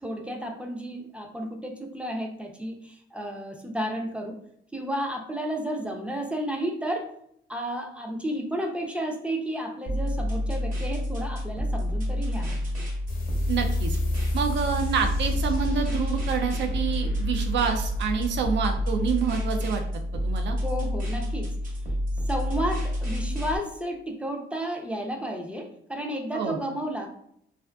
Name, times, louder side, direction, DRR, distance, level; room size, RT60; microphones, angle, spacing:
voice 1, 0.0-4.4 4.7-7.1 7.5-12.6 20.6-21.5 22.3-27.1, right 1 dB, 5° right, 2 dB, 0.4 m, -32 dB
sound 1, 9.9-23.6, left 1 dB, 45° right, 1.0 m, -29 dB
sound 2, 13.1-20.2, left 1 dB, 45° left, 0.6 m, -33 dB
voice 2, 13.5-14.0 14.3-19.8 20.2-20.6 26.3-26.6, right 6 dB, 65° right, 5 dB, 0.5 m, -27 dB
2.4 x 2.4 x 2.2 m, 0.70 s
cardioid pair, 90°, 20 cm